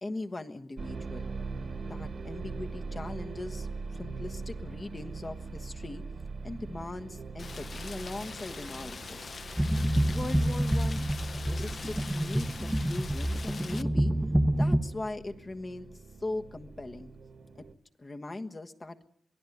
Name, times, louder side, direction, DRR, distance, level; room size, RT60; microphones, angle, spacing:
voice 1, 0.0-1.3 1.9-6.0 6.4-9.3 10.1-11.1 11.4-14.1 14.6-15.9 16.2-17.1 17.5-17.7 18.0-19.0, left 2 dB, 30° left, 6 dB, 1.4 m, -40 dB
sound 1, 0.8-17.7, right 4 dB, 60° right, 1.7 m, -42 dB
Rain, 7.4-13.8, left 4 dB, 55° left, 0.9 m, -43 dB
sound 2, 9.6-14.8, right 1 dB, 5° right, 1.0 m, -27 dB
23.0 x 16.0 x 9.4 m, 0.68 s
wide cardioid pair, 115°, 0 cm